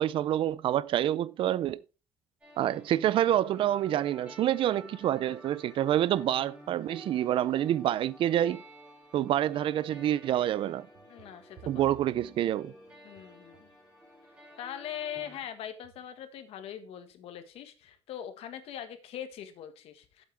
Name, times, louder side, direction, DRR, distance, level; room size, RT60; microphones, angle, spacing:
voice 1, 0.0-1.8 2.6-8.6 9.1-10.9 11.7-12.7, right 12 dB, 60° right, 0.5 m, -27 dB
sound 1, 2.4-15.4, equal, 15° right, 6.7 m, -52 dB
sound 2, 10.4-13.9 15.2-15.5 15.8-16.2, right 10 dB, 80° right, 1.4 m, -55 dB
voice 2, 11.1-11.8 13.0-13.7 14.6-20.2, left 10 dB, 90° left, 1.6 m, -41 dB
11.5 x 8.1 x 3.4 m
cardioid pair, 150°, 10 cm